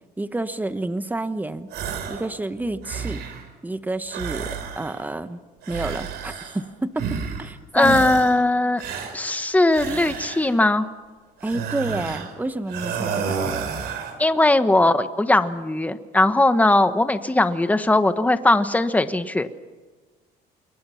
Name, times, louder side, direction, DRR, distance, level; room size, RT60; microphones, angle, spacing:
voice 1, 0.2-1.7 2.1-3.2 3.6-5.4 5.7-8.0 11.4-13.4, right 2 dB, 10° right, 11 dB, 1.3 m, -29 dB
sound 1, 1.7-2.3 2.6-3.5 4.1-5.1 5.6-6.6 7.0-7.5 7.8-8.4 8.8-10.6 11.4-12.4 12.7-14.2, right 6 dB, 75° right, 3.8 m, -31 dB
voice 2, 7.7-8.8 9.1-10.9 14.2-19.5, left 2 dB, 10° left, 10 dB, 1.3 m, -19 dB
28.5 x 22.5 x 5.8 m, 1.4 s
cardioid pair, 110°, 17 cm